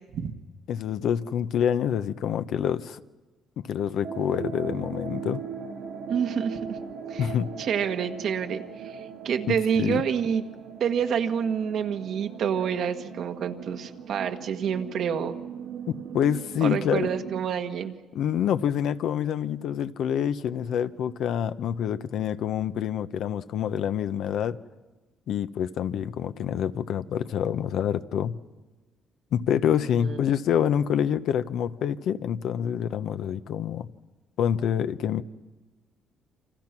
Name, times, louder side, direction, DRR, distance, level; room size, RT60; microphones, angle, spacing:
voice 1, 0.7-3.0 3.6-5.4 7.2-7.5 9.5-10.0 15.9-17.1 18.1-24.6 25.3-28.4 29.3-33.9 34.4-35.2, left 9 dB, 70° left, 11 dB, 0.9 m, -27 dB
sound 1, 4.0-17.4, right 7 dB, 85° right, 2.9 m, -39 dB
voice 2, 6.1-6.8 7.1-7.3 7.6-10.4 10.8-15.4 16.6-18.0 30.0-30.2, right 7 dB, 65° right, 6 dB, 1.7 m, -28 dB
29.0 x 25.5 x 6.1 m, 1.2 s
cardioid pair, 90°, 0 cm